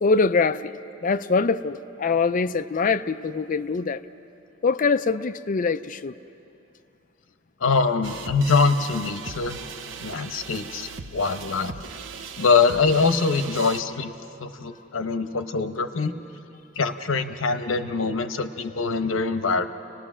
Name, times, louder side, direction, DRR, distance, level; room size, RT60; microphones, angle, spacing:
voice 1, 0.0-4.0 4.6-6.1, left 4 dB, 40° left, 12 dB, 0.4 m, -23 dB
voice 2, 7.6-9.6 10.0-11.7 12.4-14.1 14.4-16.1 16.8-19.7, left 4 dB, 80° left, 9 dB, 1.0 m, -23 dB
sound 1, 8.0-13.8, right 5 dB, 65° right, 0.8 m, -38 dB
30.0 x 19.0 x 6.2 m, 2.9 s
head